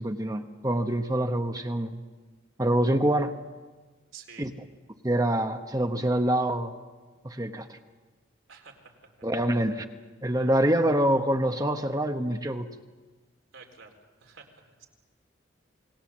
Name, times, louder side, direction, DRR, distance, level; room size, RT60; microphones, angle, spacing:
voice 1, 0.0-2.0 2.6-3.4 4.4-4.5 5.0-6.8 7.2-7.8 9.2-9.9 10.2-12.7, right 1 dB, 20° right, 6 dB, 1.0 m, -26 dB
voice 2, 4.1-4.5 8.5-9.3 13.5-14.9, right 6 dB, 80° right, 2 dB, 4.1 m, -50 dB
28.0 x 19.5 x 7.4 m, 1.3 s
head